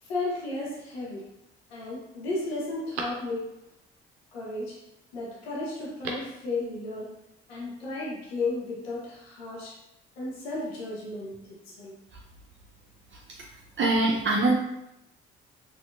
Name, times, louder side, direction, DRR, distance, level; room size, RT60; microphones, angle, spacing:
voice 1, 0.0-1.3 1.7-3.5 4.3-4.8 5.1-7.1 7.5-9.8 10.2-12.0, left 2 dB, 80° left, -4 dB, 1.0 m, -34 dB
Telephone, 0.6-1.2 1.8-1.9 2.2-3.8 5.8-6.4 6.7-6.8, right 3 dB, 90° right, 0.6 m, -40 dB
voice 2, 13.8-14.6, right 2 dB, 40° right, -2 dB, 0.6 m, -22 dB
4.3 x 2.9 x 2.4 m, 0.87 s
hypercardioid pair, 50°, 31 cm